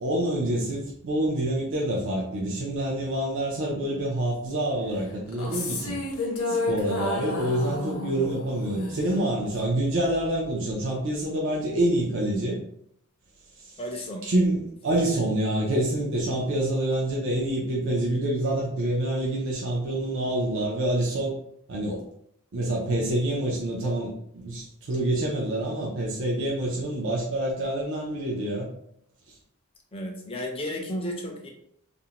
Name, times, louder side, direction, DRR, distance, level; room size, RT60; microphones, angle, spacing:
voice 1, 0.0-6.0 6.5-12.6 13.6-13.8 14.2-21.3 21.7-22.0 22.5-28.7, right 1 dB, 60° right, -3 dB, 0.5 m, -27 dB
sound 1, 5.3-9.7, left 2 dB, 70° left, 0.6 m, -31 dB
voice 2, 13.8-14.2 14.9-15.2 29.9-31.5, equal, 25° left, 1 dB, 0.4 m, -34 dB
2.5 x 2.0 x 2.8 m, 0.71 s
head